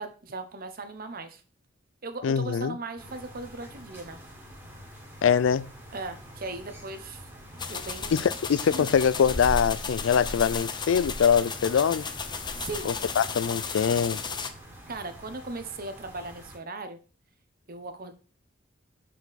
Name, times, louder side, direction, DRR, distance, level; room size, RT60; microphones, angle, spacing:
voice 1, 0.0-1.4 2.0-4.2 5.9-7.2 7.7-8.3 8.7-8.9 12.6-13.0 13.7-13.8 14.9-17.0 17.7-18.1, right 3 dB, 50° right, 1.0 m, -38 dB
voice 2, 2.2-2.8 5.2-5.7 8.1-12.1 12.9-14.2, left 7 dB, 80° left, 0.4 m, -23 dB
sound 1, 3.0-16.6, equal, 10° right, 1.8 m, -47 dB
sound 2, 7.6-14.5, left 4 dB, 25° left, 0.6 m, -34 dB
6.7 x 4.7 x 4.1 m
head